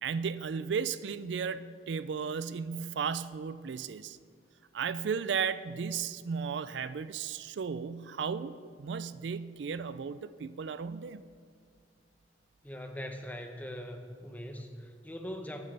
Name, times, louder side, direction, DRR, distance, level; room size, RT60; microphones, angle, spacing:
voice 1, 0.0-4.2 4.7-11.2, right 6 dB, 80° right, 14 dB, 0.4 m, -35 dB
voice 2, 12.6-15.7, equal, 10° left, 5 dB, 0.9 m, -41 dB
21.0 x 9.3 x 3.4 m, 2.1 s
head